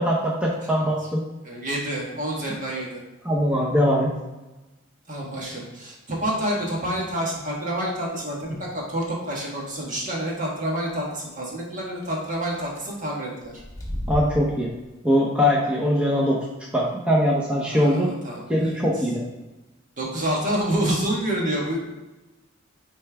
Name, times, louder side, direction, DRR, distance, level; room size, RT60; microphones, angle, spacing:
voice 1, 0.0-1.2 3.2-4.1 14.1-14.7 15.0-16.4 16.7-18.1 18.5-19.2, equal, 5° right, -5 dB, 0.8 m, -21 dB
voice 2, 1.4-3.0 5.1-13.6 17.7-18.8 20.0-21.8, right 1 dB, 40° right, -3 dB, 1.5 m, -28 dB
sound 1, 8.2-8.5 9.1-9.2 9.5-9.6 9.9-10.0 12.0-12.1 12.5-12.8 13.4-14.8, left 1 dB, 15° left, 1.1 m, -33 dB
9.2 x 3.4 x 3.5 m, 1.1 s
head